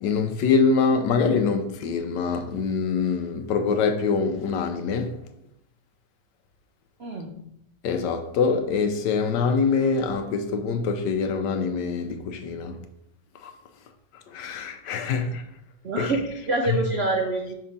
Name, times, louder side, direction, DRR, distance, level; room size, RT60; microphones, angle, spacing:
voice 1, 0.0-5.1 7.8-12.8 13.4-13.5 14.3-15.4 16.0-16.1 16.7-16.8, left 5 dB, 80° left, 1.2 m, -24 dB
voice 2, 7.0-7.3 15.8-17.5, right 2 dB, 75° right, 0.5 m, -26 dB
5.5 x 3.4 x 5.1 m
omnidirectional pair, 2.0 m